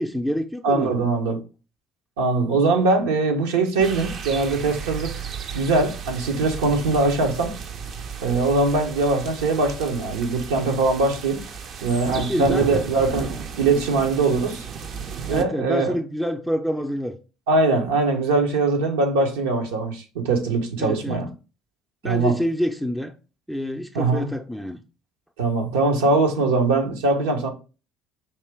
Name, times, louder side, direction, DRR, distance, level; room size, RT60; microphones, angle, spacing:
voice 1, 0.0-0.9 12.1-12.9 15.3-17.2 20.8-21.2 22.0-23.1 23.5-24.8, equal, ahead, 0.5 m, -27 dB
voice 2, 0.6-1.4 2.2-5.1 5.5-7.5 8.2-11.4 11.8-13.3 13.6-14.7 15.3-15.9 17.5-21.3 22.0-22.4 23.9-24.3 25.4-27.5, right 3 dB, 85° right, 0.8 m, -21 dB
sound 1, 3.8-15.4, right 6 dB, 55° right, 0.5 m, -34 dB
4.5 x 2.9 x 3.3 m
hypercardioid pair, 70°, 0 cm